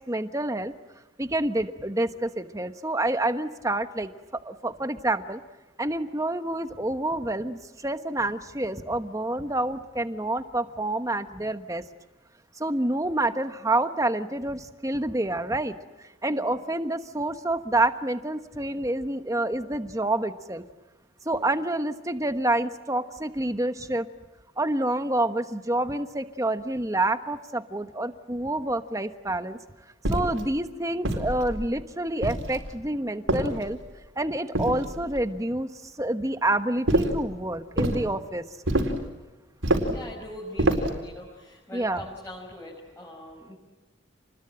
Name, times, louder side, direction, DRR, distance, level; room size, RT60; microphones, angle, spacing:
voice 1, 0.1-0.7 1.2-4.1 4.4-5.4 5.8-11.8 12.6-15.7 16.2-20.6 21.2-24.1 24.6-29.6 30.1-33.8 34.2-35.7 36.0-38.4 41.7-42.0, right 1 dB, 15° right, 9 dB, 1.2 m, -28 dB
voice 2, 16.3-16.6 21.3-21.6 39.9-43.5, left 1 dB, 10° left, -3 dB, 5.7 m, -42 dB
sound 1, 30.0-30.5 31.0-31.7 32.2-32.7 33.3-33.9 34.5-35.2 36.9-37.2 37.8-38.0 38.7-39.1 39.6-40.0 40.6-41.0, right 1 dB, 85° right, 4.3 m, -26 dB
29.5 x 21.5 x 8.9 m, 1.2 s
head